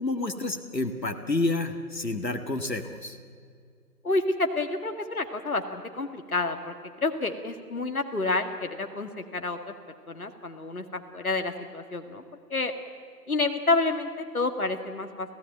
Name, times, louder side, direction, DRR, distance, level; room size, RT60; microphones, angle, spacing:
voice 1, 0.0-3.2, left 2 dB, 90° left, 6 dB, 2.0 m, -29 dB
voice 2, 4.0-9.7 10.1-12.2 12.5-12.7 13.3-15.3, left 3 dB, 60° left, 6 dB, 2.0 m, -29 dB
26.5 x 16.5 x 9.1 m, 2.2 s
figure-of-eight pair, 160°, 49 cm